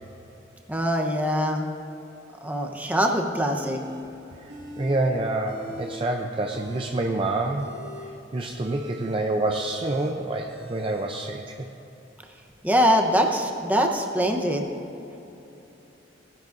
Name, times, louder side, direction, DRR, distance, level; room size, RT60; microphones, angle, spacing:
voice 1, 0.7-1.7 2.4-3.8 12.6-14.6, equal, 10° right, 2 dB, 0.9 m, -23 dB
sound 1, 3.5-4.1 4.5-5.0 5.3-6.1 6.4-11.1, left 1 dB, 60° right, 1.7 m, -42 dB
voice 2, 4.4-7.7 8.0-11.7, right 2 dB, 30° right, 2 dB, 0.5 m, -27 dB
17.5 x 10.5 x 2.6 m, 3.0 s
head